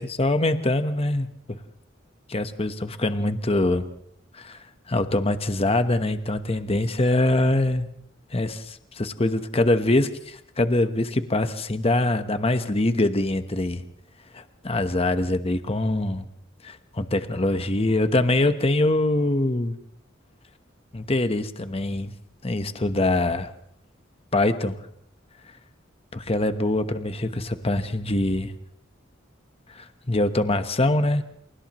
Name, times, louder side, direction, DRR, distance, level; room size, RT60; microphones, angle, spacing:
voice 1, 0.0-1.6 2.3-3.8 4.3-4.6 4.9-7.9 8.3-13.8 14.3-16.2 16.6-19.7 20.9-22.1 22.4-23.5 24.3-24.8 26.1-28.5 29.8-31.2, left 2 dB, 30° left, 9 dB, 1.1 m, -24 dB
29.5 x 28.0 x 3.1 m, 0.67 s
head